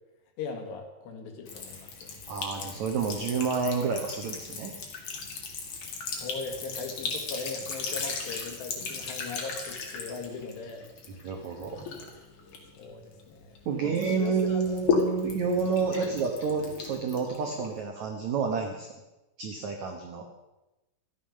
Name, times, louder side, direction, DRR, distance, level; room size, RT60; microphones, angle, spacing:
voice 1, 0.4-2.1 6.1-10.9 12.8-14.6 15.9-16.2, left 4 dB, 70° left, 3 dB, 3.9 m, -39 dB
Sink (filling or washing) / Trickle dribble, 1.5-13.6 14.0-17.8, left 5 dB, 50° left, 3.0 m, -35 dB
voice 2, 2.3-4.7 11.2-11.9 13.6-18.9 19.4-20.2, right 5 dB, 80° right, 3 dB, 1.6 m, -29 dB
13.5 x 12.0 x 6.5 m, 1.0 s
omnidirectional pair, 5.2 m